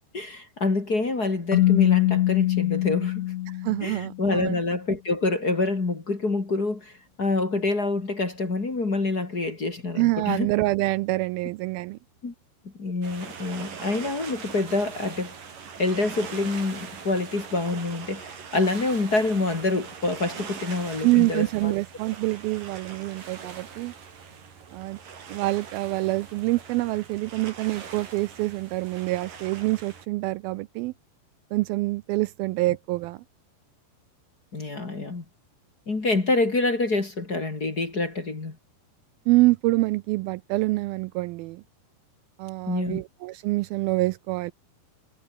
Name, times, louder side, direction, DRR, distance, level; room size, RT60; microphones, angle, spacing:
voice 1, 0.1-3.3 3.8-10.5 12.2-12.3 12.8-15.3 15.8-21.7 34.5-35.2 35.9-38.6 42.7-43.0, left 3 dB, 25° left, 2.8 m, -26 dB
Keyboard (musical), 1.5-4.3, left 15 dB, 85° left, 1.6 m, -23 dB
voice 2, 3.6-4.6 10.0-12.0 21.0-23.9 24.7-25.0 25.3-30.9 31.5-33.2 39.3-41.6 42.4-44.5, right 20 dB, 80° right, 2.3 m, -26 dB
sound 1, 13.0-30.1, right 6 dB, 60° right, 5.4 m, -41 dB
omnidirectional pair, 4.5 m